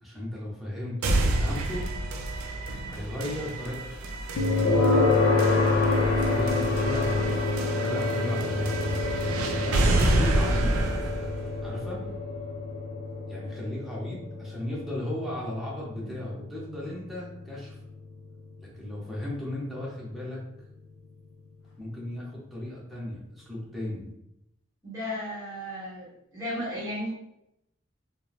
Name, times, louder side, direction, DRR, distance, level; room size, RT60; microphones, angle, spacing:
voice 1, 0.0-1.9 2.9-4.0 4.5-5.1 5.8-8.8 9.6-10.7 11.0-11.1 11.6-12.0 13.3-17.7 18.6-20.4 21.8-24.0, left 1 dB, ahead, -6 dB, 0.6 m, -36 dB
sound 1, 1.0-13.0, right 2 dB, 90° right, 0.4 m, -29 dB
sound 2, 4.4-19.3, left 3 dB, 80° left, 0.4 m, -28 dB
voice 2, 24.8-26.1 26.3-27.1, equal, 15° right, -10 dB, 1.2 m, -34 dB
2.9 x 2.0 x 2.3 m, 0.83 s
head